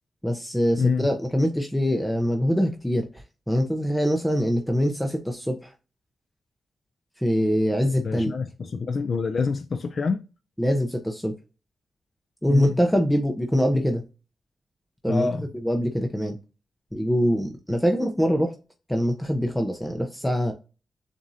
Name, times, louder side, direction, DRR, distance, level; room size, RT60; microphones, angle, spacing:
voice 1, 0.2-5.7 7.2-8.3 10.6-11.3 12.4-14.0 15.0-16.4 16.9-18.5 18.9-20.5, equal, 5° left, 0.6 m, -24 dB
voice 2, 0.8-1.1 8.0-10.2 12.5-12.8 15.1-15.4, left 4 dB, 55° left, 0.4 m, -26 dB
7.2 x 2.5 x 2.6 m
cardioid pair, 95°, 0 cm